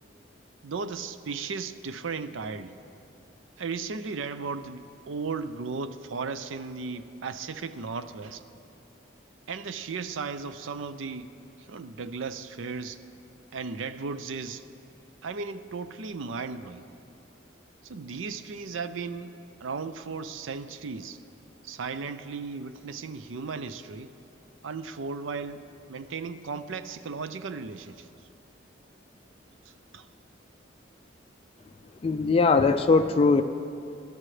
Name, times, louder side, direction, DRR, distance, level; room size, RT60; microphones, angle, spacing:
voice 1, 0.6-2.7 3.6-8.4 9.5-11.3 11.7-13.0 13.5-14.6 15.2-16.8 17.8-19.3 19.6-21.2 21.6-24.1 24.6-28.1 29.9-30.1, right 4 dB, 85° right, 12 dB, 0.5 m, -35 dB
voice 2, 32.0-33.4, left 4 dB, 30° left, 7 dB, 0.3 m, -20 dB
21.5 x 12.0 x 3.3 m, 2.7 s
head